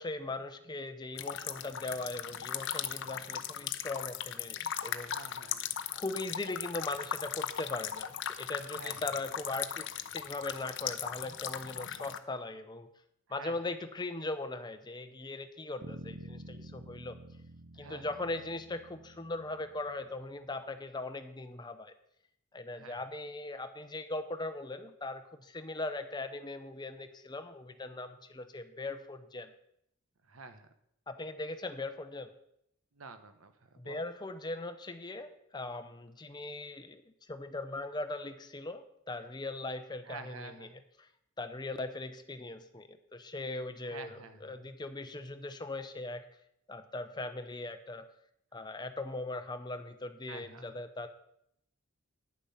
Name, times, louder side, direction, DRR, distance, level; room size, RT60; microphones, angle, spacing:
voice 1, 0.0-5.2 5.9-9.9 10.1-12.9 13.3-17.2 17.8-21.9 22.5-29.5 31.1-32.3 33.8-37.0 37.3-40.7 41.0-41.1 41.4-46.2 46.7-48.0 48.5-51.1, left 2 dB, 20° left, 8 dB, 0.7 m, -39 dB
sound 1, 1.2-12.2, left 9 dB, 60° left, 0.6 m, -38 dB
voice 2, 5.1-5.7 8.7-9.0 13.3-13.7 17.8-18.1 22.7-23.0 30.2-30.7 32.9-34.1 40.0-40.7 43.8-44.7 50.3-50.8, right 4 dB, 85° right, 9 dB, 1.0 m, -49 dB
Bass guitar, 15.8-20.2, right 1 dB, 50° right, 0.7 m, -49 dB
9.7 x 7.0 x 5.6 m, 0.74 s
head